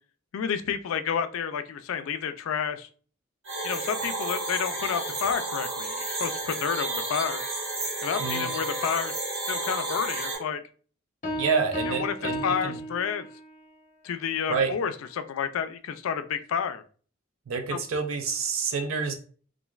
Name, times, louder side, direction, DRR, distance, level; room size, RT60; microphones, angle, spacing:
voice 1, 0.3-2.9 3.6-7.4 8.0-9.2 9.5-10.6 11.9-13.3 14.0-16.8 17.7-17.8, left 7 dB, 85° left, 10 dB, 0.3 m, -30 dB
sound 1, 3.4-10.4, right 2 dB, 65° right, 1.1 m, -32 dB
voice 2, 8.2-8.5 11.4-12.7 14.5-14.7 17.5-19.1, right 5 dB, 85° right, 5 dB, 0.4 m, -28 dB
Piano, 11.2-13.6, equal, 35° left, 0.5 m, -34 dB
3.0 x 2.5 x 2.3 m, 0.42 s
head